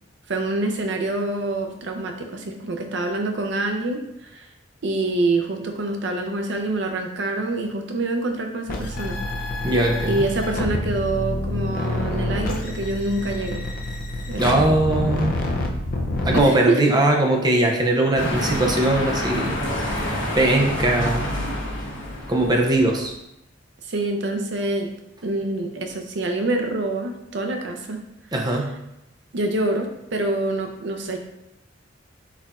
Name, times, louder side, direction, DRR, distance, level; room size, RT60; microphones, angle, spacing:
voice 1, 0.3-4.5 4.8-9.2 10.1-13.7 14.3-14.4 16.3-16.8 23.9-24.9 25.2-28.0 29.3-31.2, right 2 dB, 65° right, 4 dB, 0.6 m, -26 dB
sound 1, 8.7-16.4, left 2 dB, 50° left, 0.5 m, -27 dB
voice 2, 9.6-10.3 14.4-15.4 16.2-21.6 22.3-23.1 28.3-28.7, right 1 dB, 20° right, 1 dB, 0.5 m, -21 dB
sound 2, 18.2-23.1, left 1 dB, 90° left, 1.1 m, -27 dB
4.0 x 2.4 x 4.1 m, 0.83 s
head